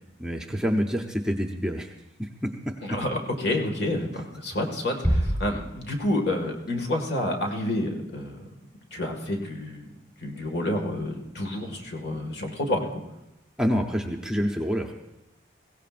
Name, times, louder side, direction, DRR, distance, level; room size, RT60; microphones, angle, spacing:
voice 1, 0.2-1.9 2.2-3.0 13.6-14.9, equal, 5° right, 1 dB, 0.7 m, -27 dB
voice 2, 2.8-8.4 8.9-9.9 10.2-13.0, left 1 dB, 60° left, 2 dB, 1.9 m, -29 dB
Bass drum, 5.0-6.4, equal, 20° left, 4.5 m, -27 dB
21.5 x 16.5 x 2.5 m, 0.92 s
head